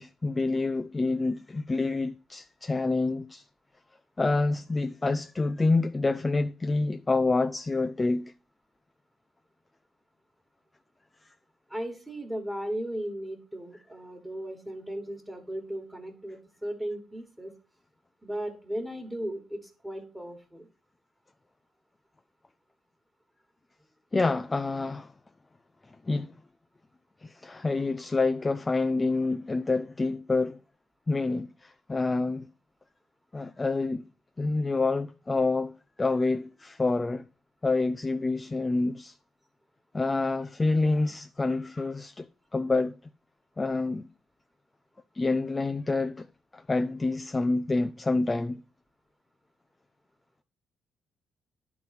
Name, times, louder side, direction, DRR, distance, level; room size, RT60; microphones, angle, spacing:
voice 1, 0.0-3.5 4.2-8.3 24.1-25.1 25.9-26.3 27.2-30.6 31.1-32.5 33.3-34.0 34.4-35.7 36.0-37.2 37.6-39.2 39.9-42.9 43.6-44.1 45.1-46.3 46.5-48.6, left 3 dB, 20° left, 0.4 m, -27 dB
voice 2, 11.7-17.5 18.2-20.7, right 1 dB, 5° right, 1.7 m, -36 dB
10.5 x 3.9 x 5.8 m
cardioid pair, 90°, 0 cm